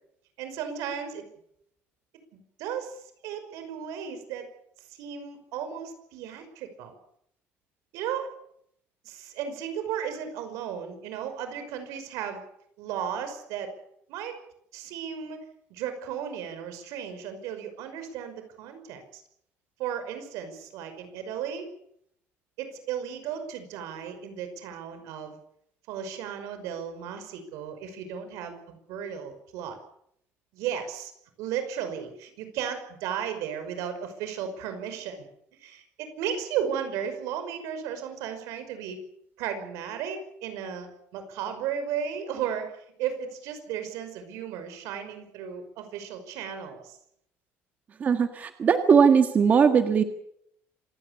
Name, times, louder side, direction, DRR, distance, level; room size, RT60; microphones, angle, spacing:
voice 1, 0.4-1.3 2.6-4.5 5.0-6.9 7.9-8.3 9.0-12.4 12.8-13.7 14.1-14.4 14.7-15.4 15.7-19.2 19.8-21.7 22.6-25.4 25.9-29.8 30.5-31.1 31.4-35.3 35.6-39.0 39.4-47.0, right 8 dB, 85° right, 9 dB, 5.6 m, -35 dB
voice 2, 48.0-50.0, right 6 dB, 30° right, 7 dB, 1.6 m, -19 dB
26.5 x 17.0 x 8.4 m, 0.73 s
cardioid pair, 160°, 5 cm